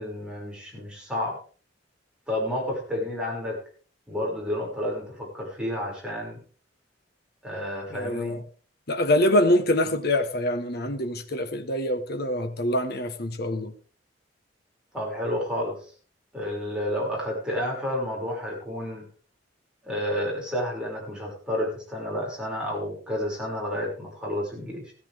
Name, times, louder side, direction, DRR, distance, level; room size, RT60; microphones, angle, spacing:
voice 1, 0.0-1.4 2.3-3.6 4.1-6.4 7.4-8.4 14.9-15.9 16.3-19.1 19.8-24.9, left 1 dB, 5° right, 6.4 m, -30 dB
voice 2, 7.9-8.4 8.9-13.7, left 1 dB, 55° left, 1.4 m, -25 dB
15.5 x 14.0 x 3.6 m
head